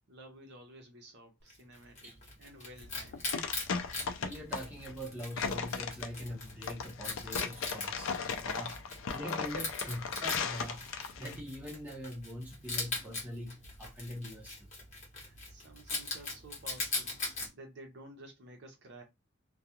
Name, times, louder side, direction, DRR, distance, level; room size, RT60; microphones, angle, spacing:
voice 1, 0.1-3.3 8.5-8.7 15.2-17.3 17.5-19.0, right 1 dB, 55° right, 0.7 m, -53 dB
Wild animals, 1.5-17.5, left 3 dB, 35° left, 1.1 m, -41 dB
sound 1, 2.8-11.4, left 5 dB, 70° left, 0.4 m, -37 dB
voice 2, 4.2-8.7 9.1-14.5, equal, 10° right, 0.8 m, -43 dB
2.3 x 2.3 x 2.8 m
head